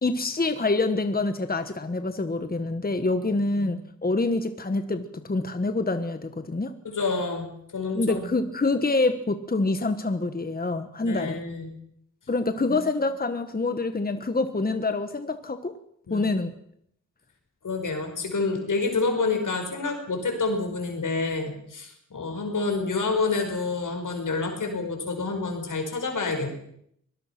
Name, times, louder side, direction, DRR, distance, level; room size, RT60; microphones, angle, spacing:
voice 1, 0.0-6.7 7.9-11.4 12.3-15.8 16.1-16.5, left 3 dB, 30° left, 9 dB, 1.3 m, -26 dB
voice 2, 6.8-8.3 11.0-11.7 12.7-12.8 16.1-16.3 17.6-26.5, left 3 dB, 85° left, 4 dB, 5.3 m, -28 dB
24.0 x 18.5 x 5.9 m, 0.71 s
wide cardioid pair, 80°, 30 cm